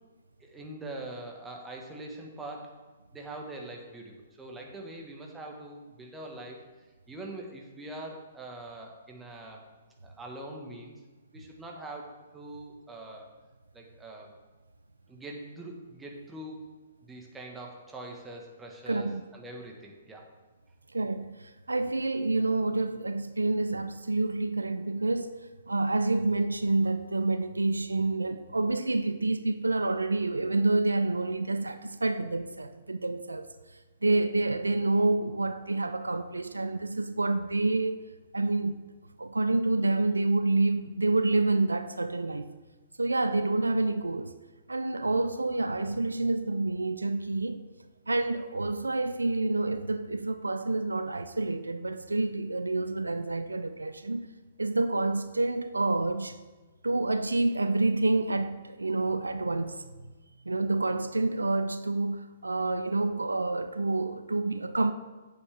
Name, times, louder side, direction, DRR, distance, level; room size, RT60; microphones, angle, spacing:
voice 1, 0.4-2.7 3.1-6.6 7.1-9.6 10.0-10.9 11.3-13.3 13.7-14.3 15.1-16.7 17.0-20.3, right 2 dB, 10° right, 1.5 m, -43 dB
voice 2, 18.9-19.2 20.9-33.5 34.0-38.0 38.3-38.8 39.2-42.5 43.0-44.3 44.7-47.6 48.1-54.3 54.6-56.4 56.8-60.1 60.5-64.9, right 2 dB, 90° right, 0.4 m, -28 dB
8.7 x 8.0 x 3.5 m
figure-of-eight pair, 120°, 0 cm